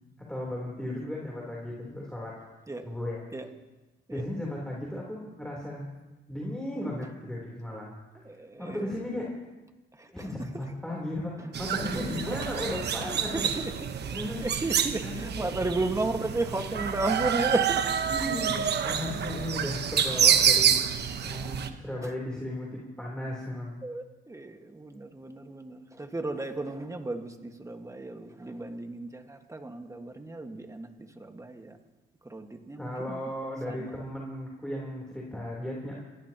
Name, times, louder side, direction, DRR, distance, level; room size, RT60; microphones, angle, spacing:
voice 1, 0.3-2.4 2.8-3.2 4.1-5.9 6.3-8.0 8.6-9.3 10.1-13.4 14.1-14.5 15.0-15.5 18.1-20.9 21.2-23.8 32.8-36.0, left 1 dB, 5° left, -4 dB, 3.6 m, -35 dB
voice 2, 8.2-8.9 9.9-10.6 11.4-11.5 13.3-13.7 14.2-17.9 22.0-22.1 23.8-31.8 32.2-33.3 33.7-33.9, right 2 dB, 15° right, 5 dB, 1.7 m, -34 dB
sound 1, 11.5-21.7, right 8 dB, 60° right, 1.2 m, -27 dB
28.5 x 16.0 x 3.0 m, 1.1 s
cardioid pair, 90°, 20 cm